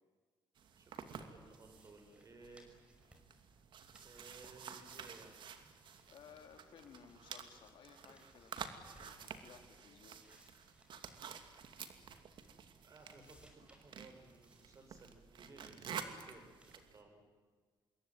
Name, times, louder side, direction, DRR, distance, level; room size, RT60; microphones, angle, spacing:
sound 1, 0.6-17.0, right 7 dB, 65° right, 2.6 m, -51 dB
voice 1, 0.8-2.6 4.0-5.4 12.8-17.2, right 3 dB, 40° right, 5 dB, 7.1 m, -59 dB
sound 2, 1.2-5.5 5.7-9.3 9.7-12.6 12.9-15.1 15.6-16.0 16.5-16.8, right 1 dB, 10° right, 5.5 m, -69 dB
voice 2, 6.1-8.5 9.0-10.2, left 7 dB, 75° left, 5 dB, 3.7 m, -59 dB
27.0 x 22.0 x 9.2 m, 1.5 s
cardioid pair, 120°, 9 cm